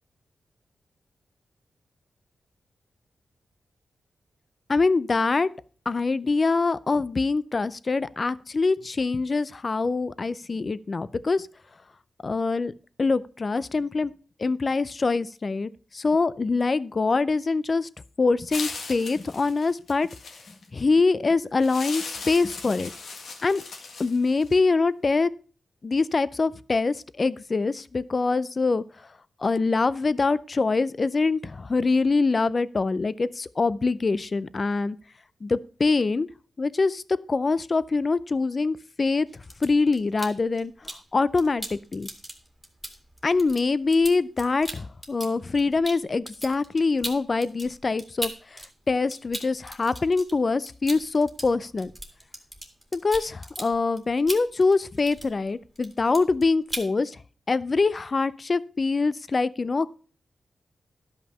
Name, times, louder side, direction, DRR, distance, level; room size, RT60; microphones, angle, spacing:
voice 1, 4.7-5.5 5.9-11.5 12.2-12.7 13.0-14.1 14.4-17.9 18.2-20.1 20.7-22.9 23.4-23.6 24.0-25.3 25.8-28.8 29.4-35.0 35.4-36.3 36.6-37.0 37.3-39.3 39.6-40.7 41.1-42.1 43.2-48.6 48.9-51.9 52.9-57.2 57.5-59.9, left 3 dB, 40° left, 17 dB, 0.5 m, -24 dB
sound 1, 18.5-20.7 21.6-24.6, left 4 dB, 75° left, 1.8 m, -38 dB
sound 2, 39.3-41.0 41.4-48.7 48.9-55.5 55.8-56.4 56.7-56.9, equal, 5° right, 2.0 m, -38 dB
12.0 x 5.7 x 5.5 m, 0.40 s
wide cardioid pair, 105°, 0 cm